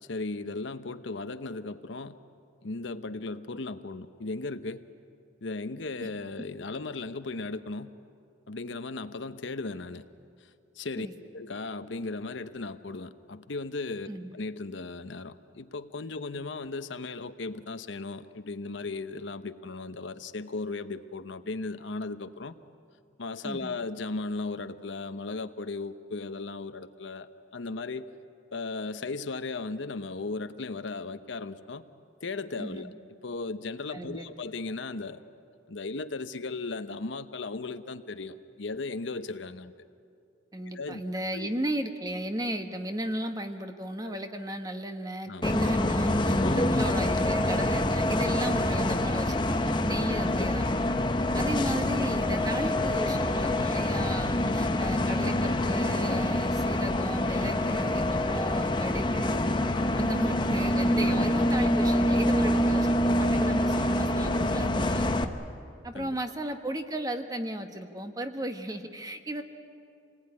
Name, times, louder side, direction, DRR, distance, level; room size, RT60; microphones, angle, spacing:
voice 1, 0.1-2.2 2.6-4.8 5.4-7.9 8.5-10.1 10.8-11.1 11.3-22.5 23.2-28.0 28.5-31.8 32.2-32.9 33.2-35.2 35.7-39.7 40.7-41.0 41.3-41.5 44.0-44.2 45.3-45.5 46.4-46.8 50.2-50.5 51.8-52.0 54.4-54.8 61.0-61.3 65.9-66.2, left 3 dB, 75° left, 10 dB, 0.9 m, -36 dB
voice 2, 23.4-23.7 32.6-32.9 33.9-34.4 40.5-51.0 51.3-59.4 59.9-65.3 65.8-69.4, right 1 dB, 20° right, 6 dB, 1.2 m, -35 dB
Bus, 45.4-65.2, left 1 dB, 25° left, 0.9 m, -26 dB
27.5 x 19.0 x 9.7 m, 2.4 s
head